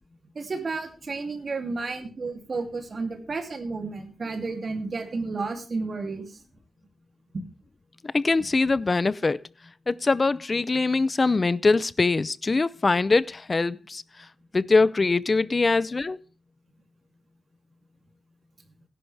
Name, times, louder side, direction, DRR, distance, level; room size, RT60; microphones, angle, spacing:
voice 1, 0.3-6.4 7.3-7.4, right 3 dB, 45° right, 2.8 m, -32 dB
voice 2, 8.0-9.4 9.9-14.0 14.5-16.2, left 3 dB, 30° left, 0.5 m, -23 dB
17.0 x 11.0 x 3.4 m
wide cardioid pair, 145°, 0 cm